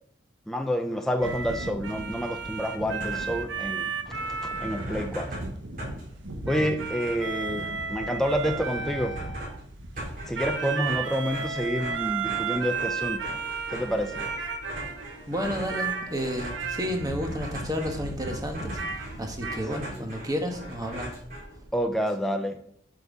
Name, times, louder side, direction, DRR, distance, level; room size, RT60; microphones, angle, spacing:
voice 1, 0.5-3.9 4.6-5.4 6.5-9.2 10.3-13.3 13.7-14.3 19.9-20.0 21.7-22.6, equal, ahead, 4 dB, 0.5 m, -28 dB
sound 1, 1.2-15.3 15.7-19.6, right 4 dB, 85° right, 1.2 m, -34 dB
sound 2, 2.8-3.5 3.8-3.9 4.1-21.9, right 1 dB, 45° right, 3.7 m, -41 dB
voice 2, 15.3-21.1, equal, 20° right, 3 dB, 1.3 m, -32 dB
8.2 x 5.4 x 4.8 m, 0.69 s
head